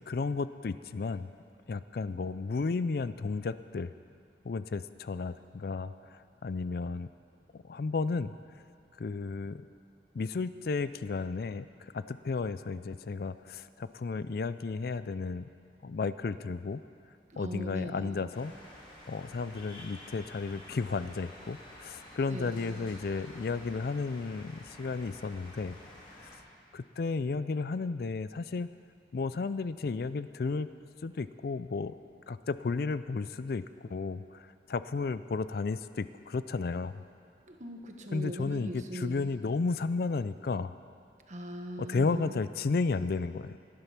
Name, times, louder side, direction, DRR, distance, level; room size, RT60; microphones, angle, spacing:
voice 1, 0.1-1.3 1.7-3.9 4.4-7.1 7.5-8.3 9.0-9.6 10.1-15.5 15.8-16.8 17.4-18.5 19.1-25.8 26.2-26.3 26.7-28.7 29.1-30.7 31.0-31.9 32.3-37.0 38.1-40.7 41.8-43.6, left 4 dB, 55° left, 14 dB, 0.4 m, -33 dB
voice 2, 17.3-18.3 22.3-22.8 37.5-39.3 41.3-42.4, equal, 40° right, 3 dB, 1.4 m, -40 dB
sound 1, 18.3-26.4, left 1 dB, 30° left, 3.1 m, -50 dB
18.5 x 11.5 x 6.0 m, 2.4 s
head